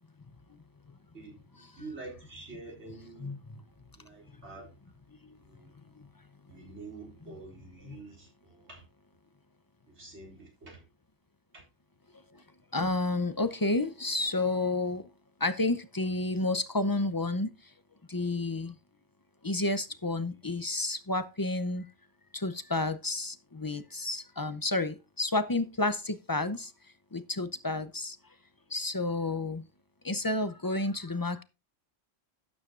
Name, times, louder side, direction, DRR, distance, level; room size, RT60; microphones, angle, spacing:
voice 1, 1.1-3.3 4.0-4.7 5.4-5.7 6.5-8.8 9.9-10.8, right 3 dB, 60° right, 4.6 m, -47 dB
voice 2, 3.2-3.6 5.2-5.4 7.3-7.4 7.8-8.0 12.7-15.0 15.4-17.5 18.1-18.8 19.4-21.9 22.3-26.7 27.1-28.2 28.7-29.6 30.0-31.4, left 2 dB, 25° left, 0.5 m, -30 dB
12.5 x 9.6 x 2.5 m
omnidirectional pair, 1.3 m